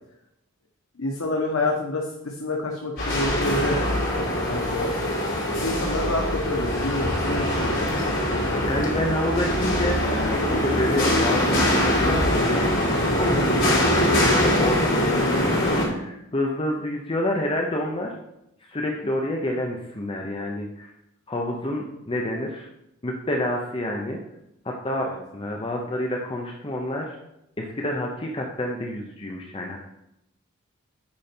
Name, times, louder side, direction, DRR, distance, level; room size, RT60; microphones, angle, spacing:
voice 1, 1.0-3.8 4.1-4.9 5.6-8.0 25.0-25.2, left 2 dB, 85° left, 0 dB, 1.0 m, -28 dB
sound 1, 3.0-15.9, left 1 dB, 65° left, 3.4 m, -23 dB
voice 2, 8.6-18.1 18.6-20.9 21.3-22.7 23.0-24.2 24.6-27.2 27.6-29.8, left 1 dB, 25° left, 1 dB, 0.7 m, -28 dB
8.6 x 5.3 x 4.4 m, 0.83 s
head